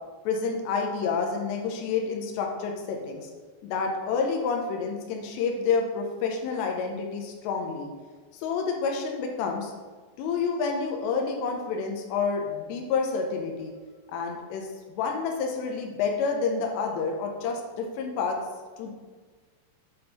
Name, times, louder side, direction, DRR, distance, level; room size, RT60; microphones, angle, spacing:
voice 1, 0.3-3.3 3.6-7.9 8.3-9.7 10.2-13.7 14.1-18.4 18.8-18.9, left 5 dB, 85° left, 2 dB, 2.9 m, -29 dB
7.8 x 3.5 x 5.7 m, 1.4 s
omnidirectional pair, 5.1 m